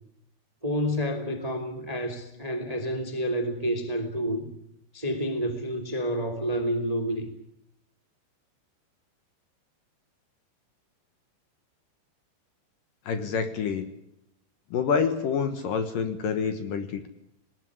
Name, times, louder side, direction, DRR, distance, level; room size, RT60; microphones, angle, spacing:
voice 1, 0.6-4.5 4.9-7.3, equal, 15° right, 6 dB, 1.8 m, -29 dB
voice 2, 13.1-13.9 14.7-17.1, left 6 dB, 65° left, 9 dB, 2.6 m, -27 dB
20.0 x 19.5 x 9.6 m, 0.79 s
omnidirectional pair, 4.9 m